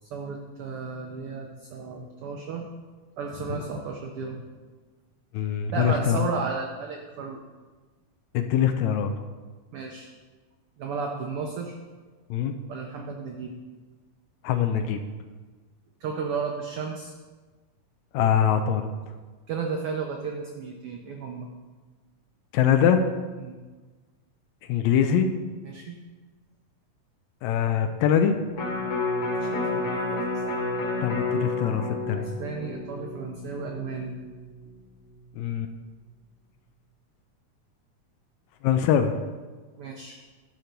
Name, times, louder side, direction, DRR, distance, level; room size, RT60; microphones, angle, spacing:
voice 1, 0.0-2.7 3.2-4.4 5.7-7.4 9.7-10.1 10.8-11.8 12.7-13.5 16.0-17.1 19.5-21.5 23.4-23.6 25.6-26.0 29.4-30.4 32.1-34.1 39.8-40.1, right 5 dB, 85° right, 2 dB, 1.2 m, -33 dB
voice 2, 5.3-6.3 8.3-9.1 12.3-12.6 14.4-15.0 18.1-18.9 22.5-23.0 24.7-25.3 27.4-28.4 31.0-32.3 35.3-35.7 38.6-39.1, left 8 dB, 80° left, 8 dB, 1.8 m, -23 dB
Electric guitar, 28.5-34.8 35.2-35.3, left 2 dB, 55° left, 1.7 m, -30 dB
11.5 x 4.5 x 5.2 m, 1.3 s
omnidirectional pair, 3.4 m